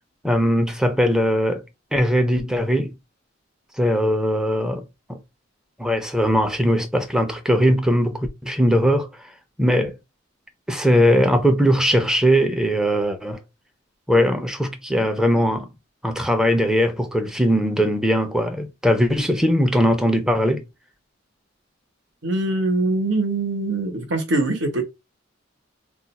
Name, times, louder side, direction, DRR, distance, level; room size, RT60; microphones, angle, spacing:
voice 1, 0.2-1.6 1.9-2.9 3.8-4.8 5.1-5.2 5.8-9.1 9.6-9.9 10.7-13.4 14.1-15.7 16.0-20.6, equal, 5° right, 0.5 m, -20 dB
voice 2, 22.2-24.8, right 2 dB, 65° right, 0.9 m, -23 dB
2.4 x 2.2 x 4.0 m
head